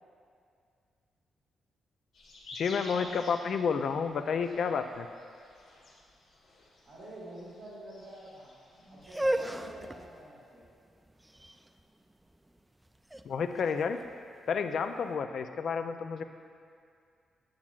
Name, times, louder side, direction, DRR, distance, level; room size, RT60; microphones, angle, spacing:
sound 1, 2.1-9.4, left 1 dB, 85° left, 1.3 m, -52 dB
voice 1, 2.5-5.1 13.2-14.0 14.5-16.2, left 6 dB, 65° left, 8 dB, 0.4 m, -30 dB
voice 2, 6.8-8.5 8.9-10.7, right 1 dB, 90° right, -12 dB, 1.7 m, -47 dB
sound 2, 9.0-14.9, right 1 dB, 15° right, 0.3 m, -37 dB
8.8 x 7.1 x 2.4 m, 2.3 s
supercardioid pair, 55°, 0 cm